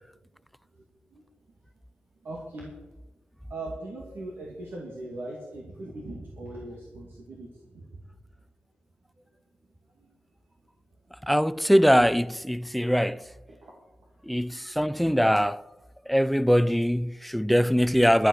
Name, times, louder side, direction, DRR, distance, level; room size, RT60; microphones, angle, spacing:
voice 1, 2.2-2.7 3.5-7.9 10.0-10.1 13.5-13.7 14.3-14.5, right 2 dB, 90° right, 2.4 m, -40 dB
voice 2, 11.3-13.3 14.2-15.6 16.1-18.3, equal, ahead, 0.3 m, -22 dB
11.5 x 11.0 x 6.4 m
wide cardioid pair, 115°, 4 cm